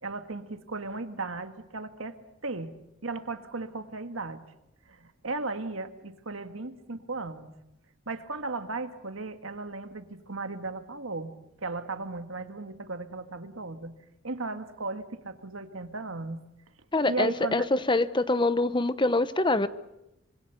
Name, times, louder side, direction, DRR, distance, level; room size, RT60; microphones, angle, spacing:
voice 1, 0.0-2.2 2.4-2.7 3.0-4.4 4.9-7.5 8.1-11.3 11.6-13.9 14.2-16.4 17.1-17.7, right 3 dB, 85° right, 8 dB, 1.8 m, -36 dB
voice 2, 16.9-19.7, left 2 dB, 25° left, 14 dB, 0.8 m, -25 dB
25.5 x 24.0 x 7.0 m, 0.90 s
head